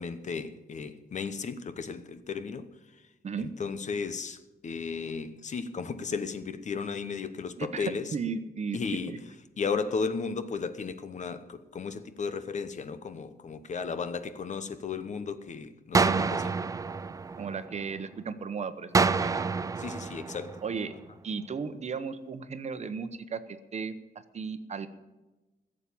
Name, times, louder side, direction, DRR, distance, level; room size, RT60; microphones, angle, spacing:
voice 1, 0.0-3.1 3.4-8.1 8.7-9.2 9.6-16.5 19.8-20.6, left 5 dB, 50° left, 0.9 m, -35 dB
voice 2, 7.6-8.8 9.1-9.2 16.0-16.3 17.4-19.5 20.6-21.0 21.2-24.0 24.3-24.9, right 5 dB, 45° right, 0.9 m, -35 dB
sound 1, 15.9-18.0 18.9-21.0, right 4 dB, 20° right, 0.4 m, -28 dB
16.0 x 7.5 x 8.5 m
wide cardioid pair, 145°, 16 cm